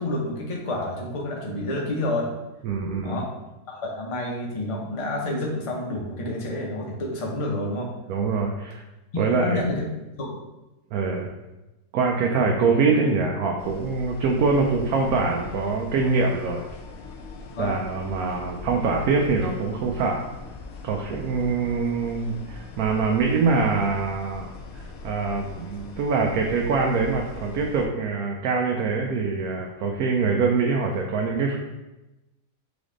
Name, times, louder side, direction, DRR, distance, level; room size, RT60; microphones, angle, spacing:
voice 1, 0.0-2.3 3.0-3.3 3.7-7.9 9.1-9.9 10.2-10.4 17.5-17.8 21.3-21.5, left 1 dB, 45° left, -1 dB, 0.4 m, -29 dB
voice 2, 2.6-3.2 8.1-8.8 9.2-9.7 10.9-11.3 11.9-16.7 17.6-20.3 20.8-24.5 25.0-31.6, right 4 dB, 70° right, 0 dB, 0.9 m, -24 dB
sound 1, 13.6-27.9, left 4 dB, 70° left, 0.9 m, -41 dB
4.0 x 3.4 x 3.7 m, 1.0 s
omnidirectional pair, 1.7 m